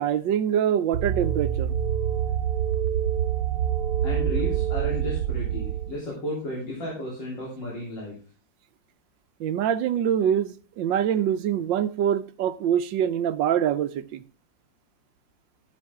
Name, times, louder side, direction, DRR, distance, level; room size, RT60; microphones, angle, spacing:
voice 1, 0.0-1.7 9.4-14.2, right 9 dB, 85° right, 1.5 m, -24 dB
sound 1, 0.9-5.9, right 9 dB, 60° right, 1.0 m, -26 dB
voice 2, 4.0-8.1, left 1 dB, 75° left, 4.1 m, -33 dB
13.5 x 8.3 x 3.6 m
omnidirectional pair, 2.0 m